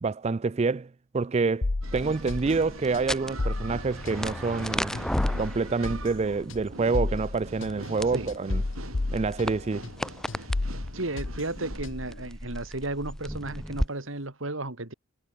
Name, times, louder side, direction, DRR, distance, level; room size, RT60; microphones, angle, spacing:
voice 1, 0.0-4.9 5.4-8.6 9.1-9.9, right 4 dB, 30° right, 0.4 m, -27 dB
sound 1, 1.6-10.0 10.3-12.2, left 2 dB, 65° left, 1.0 m, -33 dB
sound 2, 1.8-11.8, right 3 dB, 90° right, 3.1 m, -44 dB
sound 3, 1.9-13.9, equal, 5° left, 4.2 m, -36 dB
voice 2, 10.9-14.9, right 2 dB, 70° right, 2.8 m, -34 dB
head